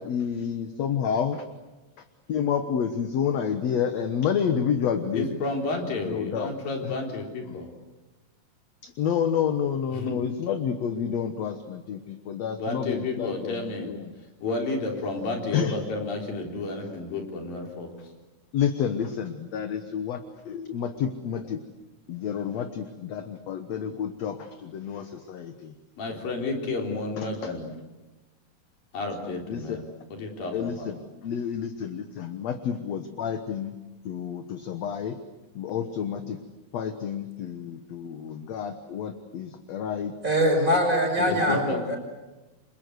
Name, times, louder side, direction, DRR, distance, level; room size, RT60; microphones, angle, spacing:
voice 1, 0.0-1.4 2.3-5.3 6.1-6.5 6.8-6.9 8.8-14.0 15.5-15.7 18.5-20.2 20.5-21.6 22.1-25.7 29.5-29.8 30.5-31.0 31.2-33.7 34.1-35.2 35.6-36.4 36.7-40.1 41.2-41.6, left 8 dB, 60° left, 8 dB, 2.1 m, -29 dB
voice 2, 5.1-7.7 9.9-10.3 12.6-13.9 14.4-17.9 26.0-27.7 28.9-29.8 30.1-31.0 41.2-41.9, left 3 dB, 80° left, 2 dB, 5.7 m, -31 dB
voice 3, 40.2-42.0, equal, 20° right, 3 dB, 6.7 m, -23 dB
29.0 x 25.0 x 8.0 m, 1.1 s
omnidirectional pair, 4.0 m